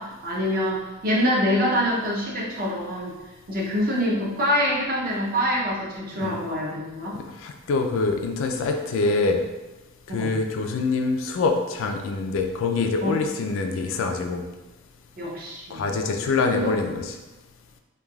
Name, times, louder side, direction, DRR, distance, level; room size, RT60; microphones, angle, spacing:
voice 1, 0.0-3.2 3.5-7.2 10.1-10.4 13.0-13.2 15.2-15.9 16.5-16.8, equal, 45° right, -2 dB, 0.5 m, -25 dB
voice 2, 7.4-9.4 10.1-14.4 15.7-17.1, left 3 dB, 65° left, 4 dB, 0.3 m, -25 dB
3.2 x 2.3 x 2.3 m, 1.1 s
head